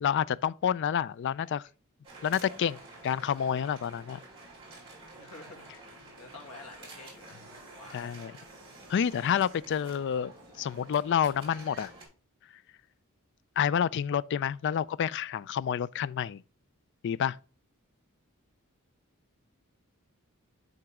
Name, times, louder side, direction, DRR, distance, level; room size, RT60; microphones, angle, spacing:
voice 1, 0.0-1.6 2.2-2.8 3.0-4.2 7.9-8.3 8.9-11.9 13.6-16.4 17.0-17.4, left 8 dB, 55° left, 0.3 m, -29 dB
sound 1, 2.0-12.1, right 2 dB, 25° right, 4.5 m, -50 dB
voice 2, 5.2-7.4 7.7-8.1, left 3 dB, 80° left, 2.2 m, -50 dB
11.0 x 3.9 x 3.5 m
head